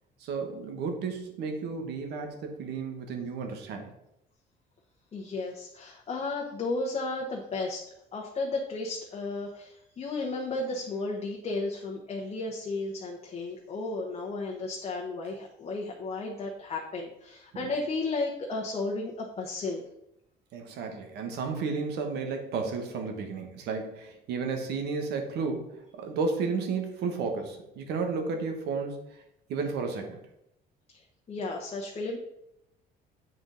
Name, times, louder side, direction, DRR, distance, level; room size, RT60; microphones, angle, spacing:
voice 1, 0.2-3.9 17.5-17.7 20.5-29.2 29.5-30.2, right 4 dB, 80° right, 4 dB, 1.3 m, -33 dB
voice 2, 5.1-7.8 8.1-19.8 30.9-32.2, left 3 dB, 35° left, -1 dB, 1.0 m, -34 dB
7.8 x 3.9 x 3.9 m, 0.82 s
cardioid pair, 110°, 17 cm